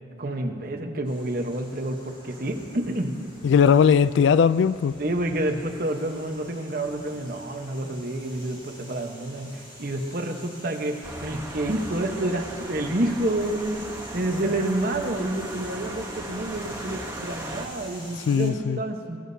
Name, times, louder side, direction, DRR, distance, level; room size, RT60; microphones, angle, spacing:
voice 1, 0.2-3.2 5.0-19.2, right 1 dB, 50° right, 1.1 m, -29 dB
sound 1, 1.0-18.5, equal, 25° left, 3.0 m, -46 dB
voice 2, 3.4-5.0 18.3-18.8, left 7 dB, 75° left, 0.3 m, -19 dB
sound 2, 11.0-17.7, right 1 dB, 15° right, 1.0 m, -38 dB
21.5 x 11.5 x 2.7 m
head